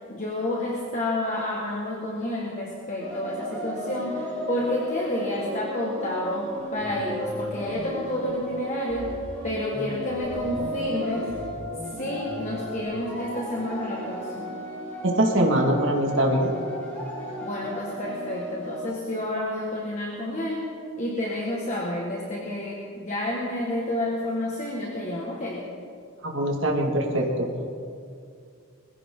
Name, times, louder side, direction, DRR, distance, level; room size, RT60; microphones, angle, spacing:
voice 1, 0.1-9.2 9.4-11.3 12.0-14.6 17.4-20.7 21.0-25.7, left 1 dB, 35° left, -3 dB, 1.7 m, -30 dB
sound 1, 3.0-18.8, equal, 10° left, 5.3 m, -34 dB
sound 2, 6.5-8.5 8.9-12.9, equal, 70° left, 4.2 m, -39 dB
voice 2, 15.0-16.5 26.2-27.5, right 1 dB, 60° right, 0 dB, 2.1 m, -23 dB
21.5 x 15.5 x 3.9 m, 2.3 s
head